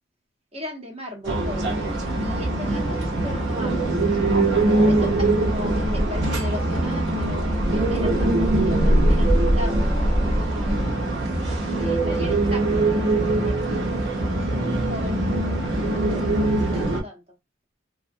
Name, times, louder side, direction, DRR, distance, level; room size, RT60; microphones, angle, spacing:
voice 1, 0.5-1.8 2.2-3.9 4.8-11.1 11.7-15.2 15.7-17.2, left 1 dB, 35° right, 1 dB, 0.8 m, -38 dB
sound 1, 1.2-17.0, right 1 dB, 70° right, 0.8 m, -22 dB
2.4 x 2.1 x 2.5 m, 0.22 s
head